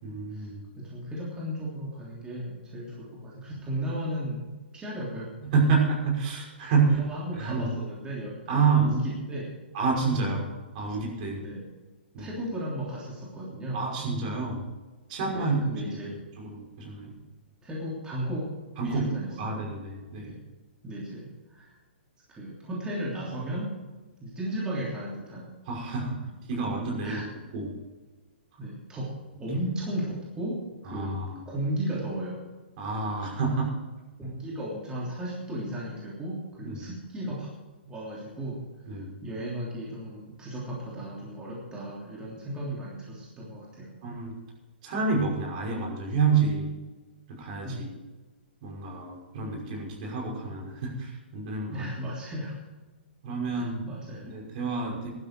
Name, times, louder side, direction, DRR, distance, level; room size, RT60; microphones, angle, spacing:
voice 1, 0.0-0.7 5.4-7.0 7.4-7.7 8.5-9.0 9.7-11.4 12.1-12.3 13.7-14.6 15.1-15.6 16.0-17.1 18.8-20.3 25.7-27.3 27.5-27.7 30.9-31.4 32.8-33.8 36.6-36.8 38.9-39.2 44.0-44.3 44.8-46.7 47.3-47.9 48.6-51.8 53.2-53.8 54.2-55.1, right 4 dB, 45° right, -1 dB, 5.6 m, -28 dB
voice 2, 0.7-5.3 6.8-9.5 11.4-11.6 12.2-13.8 15.3-16.1 17.6-18.4 18.8-19.6 20.1-20.4 20.8-21.8 22.3-23.7 24.2-25.5 27.0-27.3 28.6-29.1 29.4-30.6 30.8-31.2 31.5-32.4 34.2-37.5 37.8-38.6 39.2-44.0 47.6-47.9 51.7-52.5 53.5-54.3, right 1 dB, 15° right, -5 dB, 3.2 m, -35 dB
16.0 x 12.0 x 4.6 m, 1.3 s
hypercardioid pair, 125°, 6 cm